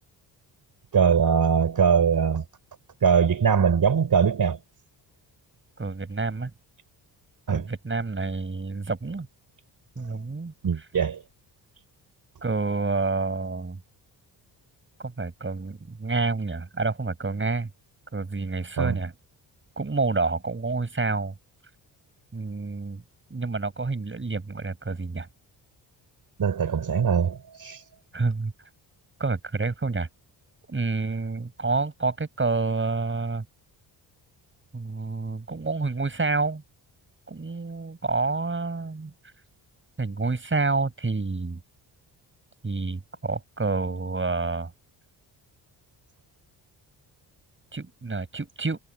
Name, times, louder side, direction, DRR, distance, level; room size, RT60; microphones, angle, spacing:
voice 1, 0.9-2.4 3.0-4.6 7.5-7.7 10.6-11.2 18.8-19.0 26.4-27.8, right 6 dB, 50° right, 3.9 m, -22 dB
voice 2, 5.8-6.5 7.5-9.3 10.0-10.5 12.4-13.8 15.0-17.7 18.1-19.1 19.8-21.3 22.3-23.0 23.3-25.3 28.1-28.5 29.2-30.1 30.7-33.4 34.7-36.6 37.3-39.1 40.0-41.6 42.6-44.7 47.7-48.8, right 3 dB, 25° right, 7.7 m, -28 dB
cardioid pair, 75°, 45 cm